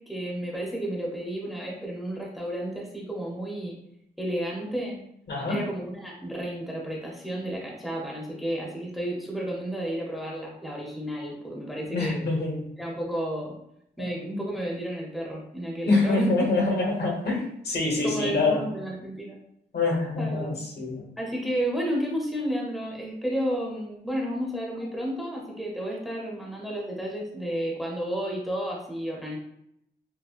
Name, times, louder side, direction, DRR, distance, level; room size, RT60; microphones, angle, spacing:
voice 1, 0.0-3.8 4.2-5.0 5.5-12.2 12.8-13.6 14.0-16.5 17.9-19.4 20.2-20.6 21.2-29.4, equal, ahead, -3 dB, 0.7 m, -32 dB
voice 2, 5.3-5.6 11.9-12.7 14.0-14.4 15.9-18.6 19.7-21.0, left 3 dB, 65° left, -1 dB, 1.1 m, -26 dB
6.1 x 2.0 x 2.4 m, 0.76 s
wide cardioid pair, 170°, 18 cm